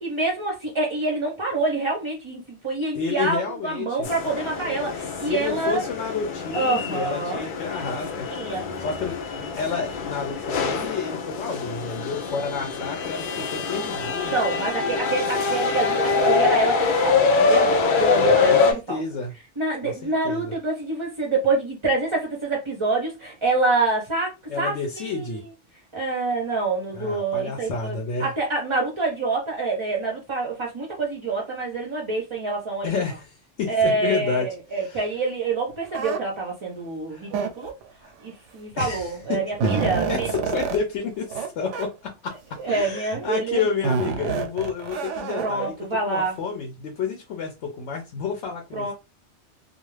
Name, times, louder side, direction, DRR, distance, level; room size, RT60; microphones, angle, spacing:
voice 1, 0.0-5.9 6.5-7.4 8.3-8.6 14.3-19.0 19.6-25.4 25.9-32.9 33.7-34.4 34.7-37.7 38.2-40.4 42.6-43.7 45.4-46.4 48.7-48.9, right 3 dB, 35° right, 0.5 m, -26 dB
voice 2, 2.9-4.1 5.2-8.3 8.8-14.3 18.1-19.3 19.8-20.5 24.5-25.4 26.9-28.3 32.8-35.1 37.1-37.3 38.0-38.1 38.8-39.7 40.1-42.4 42.7-45.7 46.1-48.9, left 5 dB, 80° left, 0.9 m, -30 dB
sound 1, 4.0-18.7, left 4 dB, 60° left, 0.6 m, -24 dB
sound 2, 35.9-36.2 37.3-37.8 38.8-38.9 39.2-40.8 41.3-41.5 41.7-41.8 42.6-43.0 43.8-45.7, right 5 dB, 85° right, 0.9 m, -27 dB
2.4 x 2.3 x 3.1 m
omnidirectional pair, 1.2 m